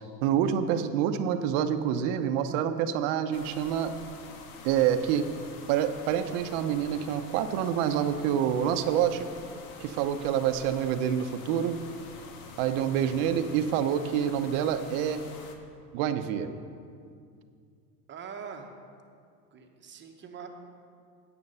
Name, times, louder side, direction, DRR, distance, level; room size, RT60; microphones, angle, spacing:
voice 1, 0.2-3.9 4.6-5.3 5.7-9.3 9.8-11.8 12.6-15.2 15.9-16.5, right 9 dB, 55° right, 9 dB, 0.8 m, -27 dB
sound 1, 3.3-15.6, left 4 dB, 60° left, 1.4 m, -47 dB
voice 2, 18.1-18.7 19.5-20.5, right 6 dB, 20° right, 4 dB, 1.1 m, -43 dB
9.6 x 8.4 x 5.5 m, 2.3 s
supercardioid pair, 120°, 49 cm